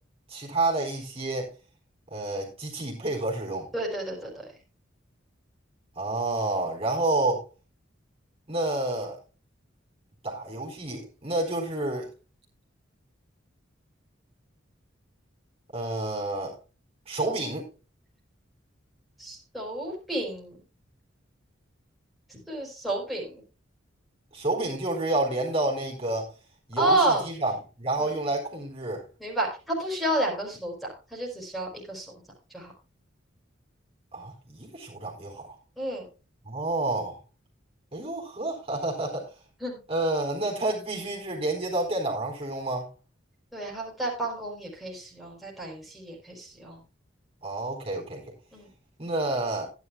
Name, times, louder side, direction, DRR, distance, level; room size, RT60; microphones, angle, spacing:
voice 1, 0.3-1.5 2.1-3.7 6.0-7.4 8.5-9.2 10.2-12.1 15.7-16.5 17.1-17.6 24.3-26.3 26.7-29.1 34.1-35.6 36.4-37.2 37.9-39.3 39.9-42.9 47.4-48.2 49.0-49.7, right 2 dB, 30° right, 4.3 m, -29 dB
voice 2, 3.7-4.5 19.2-20.6 22.3-23.4 26.8-27.3 28.0-28.1 29.2-32.1 32.5-32.7 35.8-36.1 39.6-39.8 43.5-46.8 48.5-48.7, right 1 dB, ahead, 4.6 m, -30 dB
16.0 x 10.5 x 2.3 m
head